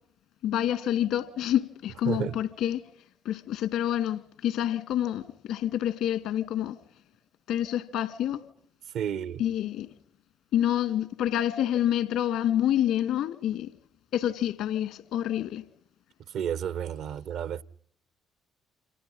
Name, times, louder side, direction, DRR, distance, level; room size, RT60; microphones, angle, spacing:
voice 1, 0.4-2.8 3.2-6.8 7.5-8.4 9.4-9.9 10.5-13.7 14.1-15.6, left 11 dB, 70° left, 2.4 m, -27 dB
voice 2, 2.0-2.4 8.9-9.5 16.3-17.6, right 9 dB, 65° right, 1.0 m, -31 dB
29.0 x 27.5 x 5.7 m
hypercardioid pair, 45°, 0 cm